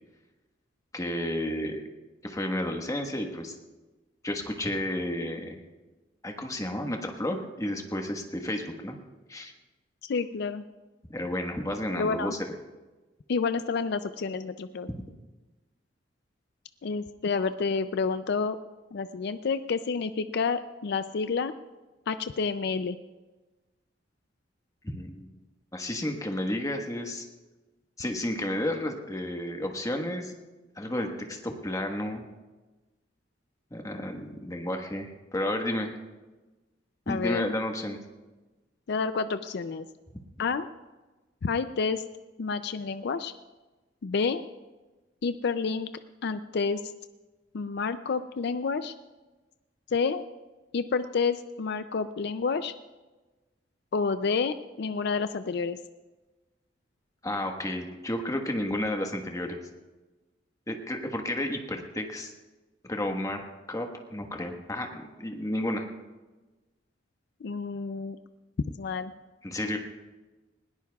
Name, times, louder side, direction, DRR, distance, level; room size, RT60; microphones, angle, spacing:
voice 1, 0.9-1.8 2.2-3.5 4.2-5.6 6.2-9.0 9.3-9.5 11.1-12.4 14.9-15.0 24.8-25.3 25.7-27.3 28.0-30.3 30.8-32.2 33.7-35.9 37.1-38.0 57.2-59.6 60.7-62.3 62.8-63.4 63.7-65.9 69.4-69.8, left 1 dB, 20° left, 3 dB, 1.4 m, -32 dB
voice 2, 10.0-10.6 12.0-12.3 13.3-14.9 16.8-18.6 18.9-21.5 22.1-23.0 37.1-37.4 38.9-39.9 40.4-40.7 41.4-42.0 42.4-43.3 44.0-44.4 45.2-45.9 46.2-46.8 47.5-48.9 49.9-50.2 50.7-52.7 53.9-55.8 67.4-68.2 68.8-69.1, left 5 dB, 65° left, 11 dB, 0.4 m, -29 dB
20.0 x 17.5 x 2.4 m, 1.2 s
head